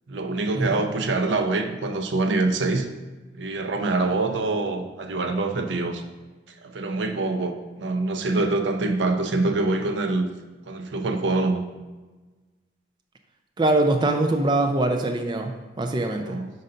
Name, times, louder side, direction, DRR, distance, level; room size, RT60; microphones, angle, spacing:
voice 1, 0.1-2.9 3.3-6.0 6.6-10.3 10.7-11.6 16.1-16.5, right 3 dB, 80° right, 6 dB, 0.5 m, -25 dB
voice 2, 13.6-16.4, right 2 dB, 25° right, 4 dB, 0.4 m, -23 dB
5.4 x 3.8 x 5.4 m, 1.3 s
head